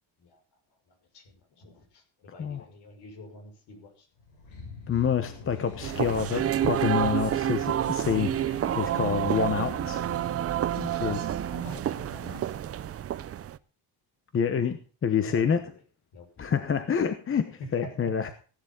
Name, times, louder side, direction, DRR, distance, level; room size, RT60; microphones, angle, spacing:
voice 1, 0.9-4.1 10.9-12.6 15.2-15.8 16.1-16.3 17.6-18.2, left 1 dB, 60° left, 5 dB, 6.1 m, -46 dB
sound 1, 4.2-10.4, left 4 dB, 80° left, 7.1 m, -45 dB
voice 2, 4.9-10.0 10.8-11.2 14.3-15.6 16.4-18.3, left 7 dB, 25° left, 9 dB, 1.0 m, -27 dB
sound 2, 5.8-13.6, right 11 dB, 30° right, 0.5 m, -29 dB
16.0 x 11.0 x 3.9 m, 0.38 s
cardioid pair, 150°, 46 cm